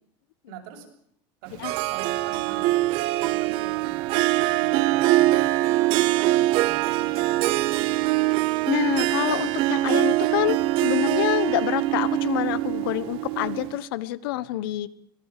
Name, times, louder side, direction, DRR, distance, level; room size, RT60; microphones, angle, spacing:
voice 1, 0.4-0.9 1.4-8.0, right 6 dB, 75° right, 1 dB, 7.4 m, -44 dB
Harp, 1.6-13.8, right 17 dB, 50° right, 0.9 m, -23 dB
voice 2, 8.7-14.9, left 16 dB, 85° left, 17 dB, 1.3 m, -27 dB
25.0 x 18.5 x 7.6 m, 0.70 s
cardioid pair, 160°, 12 cm